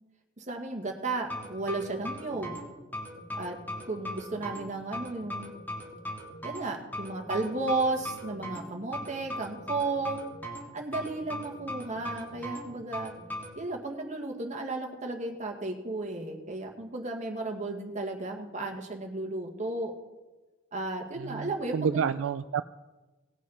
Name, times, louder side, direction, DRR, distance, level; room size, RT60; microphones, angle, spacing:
voice 1, 0.4-2.5 3.3-3.6 3.8-5.5 6.4-10.3 10.7-13.1 13.5-19.9 20.7-22.1, right 2 dB, 35° right, 2 dB, 1.6 m, -34 dB
sound 1, 1.3-13.5, left 1 dB, 10° left, 1.9 m, -39 dB
voice 2, 21.2-22.6, right 7 dB, 70° right, 12 dB, 0.3 m, -29 dB
18.5 x 6.3 x 5.5 m, 1.2 s
head